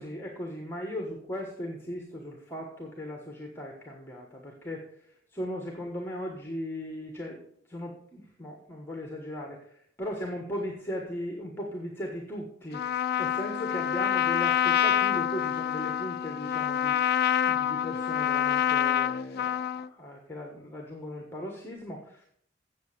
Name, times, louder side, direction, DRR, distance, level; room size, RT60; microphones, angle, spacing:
voice 1, 0.0-4.8 5.3-7.4 7.7-12.9 13.2-17.0 17.5-22.3, equal, 10° left, 1 dB, 1.3 m, -38 dB
Trumpet, 12.7-19.9, left 10 dB, 55° left, 0.3 m, -27 dB
8.0 x 7.5 x 6.7 m, 0.66 s
head